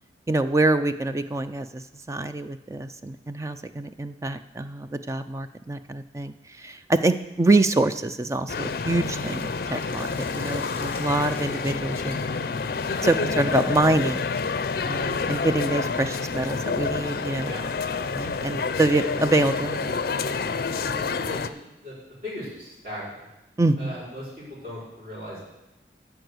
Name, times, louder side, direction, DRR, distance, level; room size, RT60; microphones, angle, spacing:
voice 1, 0.3-10.1 10.3-12.2 13.0-14.3 14.9-17.5 18.2-20.0 23.6-23.9, right 2 dB, 15° right, 10 dB, 0.3 m, -25 dB
sound 1, 8.5-21.5, left 4 dB, 55° left, 0.5 m, -28 dB
Water tap faucet, 8.9-17.5, left 2 dB, 10° left, 1.3 m, -49 dB
voice 2, 20.7-21.9 22.2-23.3 23.8-25.4, left 1 dB, 45° right, -10 dB, 4.7 m, -38 dB
12.5 x 4.7 x 8.0 m, 0.98 s
head